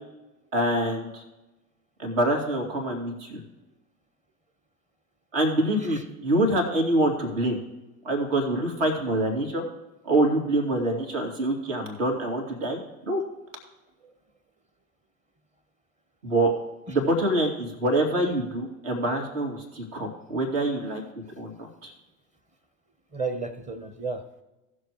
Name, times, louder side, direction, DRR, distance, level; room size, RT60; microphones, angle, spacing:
voice 1, 0.5-1.2 2.0-3.4 5.3-7.6 8.0-9.6 10.0-12.8 13.1-13.2 16.2-16.5 16.9-21.0 21.4-21.9, right 1 dB, 60° right, 2 dB, 2.6 m, -25 dB
voice 2, 23.1-24.4, right 4 dB, 15° right, 10 dB, 1.0 m, -33 dB
18.0 x 6.5 x 3.1 m, 1.0 s
figure-of-eight pair, 80°, 43 cm